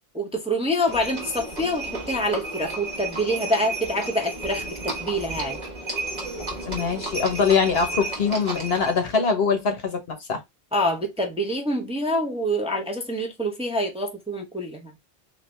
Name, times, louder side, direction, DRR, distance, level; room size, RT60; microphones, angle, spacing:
voice 1, 0.1-5.6 10.7-14.9, equal, 5° right, 0.6 m, -26 dB
Livestock farm animals working animals, 0.9-9.0, right 2 dB, 45° right, 1.5 m, -33 dB
voice 2, 6.7-10.4, left 5 dB, 75° left, 1.3 m, -23 dB
3.9 x 2.8 x 3.3 m
omnidirectional pair, 1.1 m